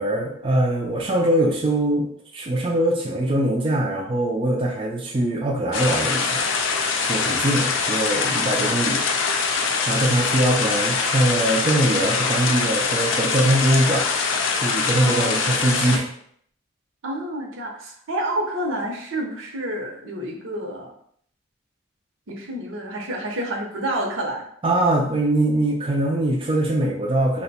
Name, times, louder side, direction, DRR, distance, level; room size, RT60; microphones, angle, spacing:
voice 1, 0.0-2.1 2.3-6.4 7.0-9.0 9.9-14.0 14.5-16.1 24.6-27.4, right 1 dB, 25° right, -2 dB, 0.4 m, -22 dB
sound 1, 5.7-16.0, left 4 dB, 70° left, 0.5 m, -23 dB
voice 2, 15.0-15.6 17.0-20.9 22.3-24.4, right 1 dB, 70° right, 1 dB, 0.8 m, -29 dB
2.9 x 2.2 x 4.0 m, 0.64 s
head